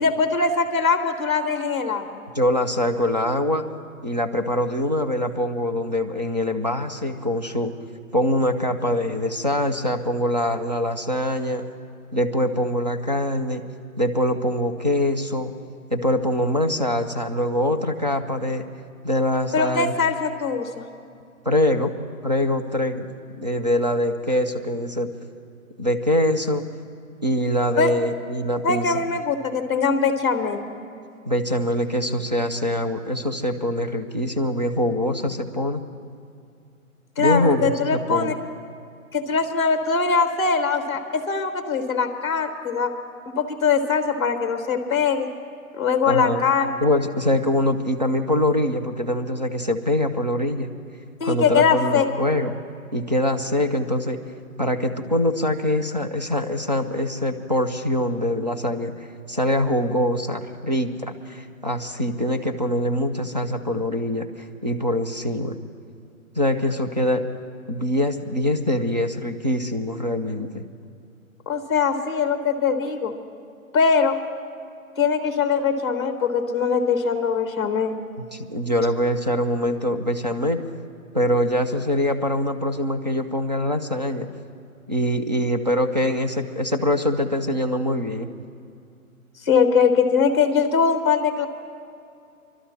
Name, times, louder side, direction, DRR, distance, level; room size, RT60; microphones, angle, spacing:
voice 1, 0.0-2.2 19.5-20.8 27.8-27.9 28.6-30.6 37.2-38.3 39.1-42.9 43.3-45.3 45.8-46.7 51.2-52.1 71.5-73.1 73.7-74.2 75.0-78.0 89.4-91.5, left 5 dB, 20° left, 7 dB, 0.8 m, -22 dB
voice 2, 2.3-3.7 4.0-7.7 8.1-11.6 12.1-13.6 14.0-15.5 15.9-18.6 19.0-19.9 21.5-21.9 22.2-23.0 23.3-25.1 25.8-26.7 27.2-29.0 31.3-35.9 37.2-38.3 46.1-46.4 46.8-50.7 51.2-52.5 52.9-54.2 54.6-58.9 59.3-64.3 64.6-65.5 66.4-67.2 67.7-70.6 78.3-80.6 81.1-84.3 84.9-88.3, left 1 dB, 35° right, 7 dB, 0.4 m, -23 dB
22.5 x 12.5 x 4.3 m, 2.4 s
hypercardioid pair, 170°, 42 cm